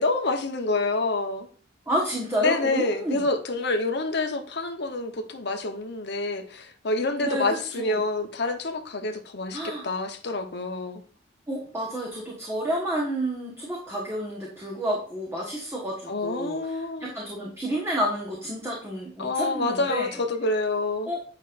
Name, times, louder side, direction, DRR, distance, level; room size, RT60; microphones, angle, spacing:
voice 1, 0.0-1.5 2.4-11.0 16.1-17.2 19.2-21.1, left 3 dB, 60° left, 1.0 m, -27 dB
voice 2, 1.9-3.2 7.2-8.0 9.5-9.9 11.5-20.2 21.1-21.2, right 1 dB, 15° right, 1.4 m, -30 dB
8.5 x 5.4 x 2.6 m
head